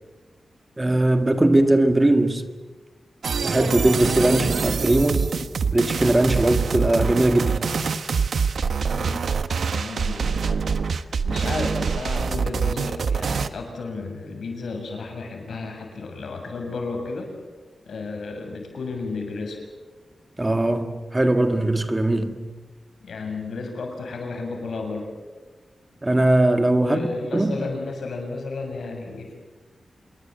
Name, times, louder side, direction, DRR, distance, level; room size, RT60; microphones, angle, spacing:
voice 1, 0.8-2.5 3.4-5.3 5.7-7.7 20.4-22.5 26.0-27.0 27.3-27.6, right 1 dB, 20° right, 1.8 m, -20 dB
sound 1, 3.2-13.5, right 5 dB, 75° right, 1.2 m, -25 dB
voice 2, 8.8-9.2 9.7-17.3 17.9-19.6 23.0-25.1 26.8-29.3, left 3 dB, 90° left, 7.1 m, -33 dB
27.0 x 22.0 x 7.9 m
wide cardioid pair, 120°, 0 cm